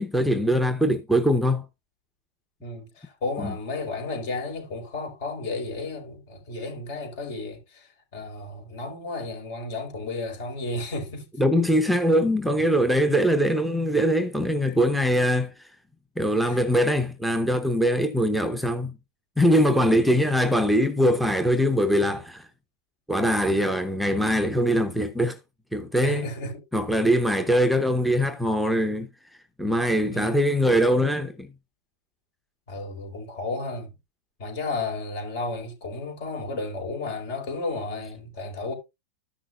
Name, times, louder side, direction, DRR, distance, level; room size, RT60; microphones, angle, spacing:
voice 1, 0.0-1.6 3.4-3.5 11.4-15.8 16.2-19.0 19.4-22.5 23.1-25.4 25.7-26.3 26.7-31.5, equal, ahead, 0.8 m, -22 dB
voice 2, 2.6-11.3 14.6-14.8 16.4-16.6 26.0-26.6 30.1-30.3 32.7-33.9 34.4-38.7, left 3 dB, 60° left, 4.6 m, -33 dB
13.5 x 6.1 x 2.5 m
hypercardioid pair, 135°, 0 cm